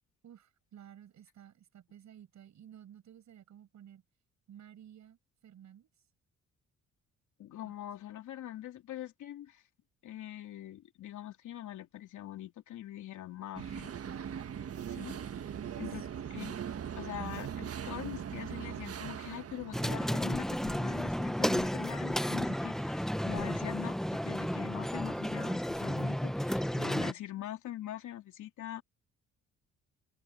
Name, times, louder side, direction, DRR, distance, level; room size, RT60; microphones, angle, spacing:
voice 1, 0.2-4.0 4.5-5.9 7.6-7.7 15.5-16.7, right 10 dB, 65° right, 7.2 m, -54 dB
voice 2, 7.4-9.6 10.0-13.9 14.9-15.2 15.8-16.0 16.3-16.6 17.0-28.8, left 13 dB, 75° left, 3.1 m, -43 dB
sound 1, 13.5-20.7, right 8 dB, 50° right, 1.6 m, -40 dB
sound 2, 19.7-27.1, equal, ahead, 0.9 m, -32 dB
cardioid pair, 90°, 30 cm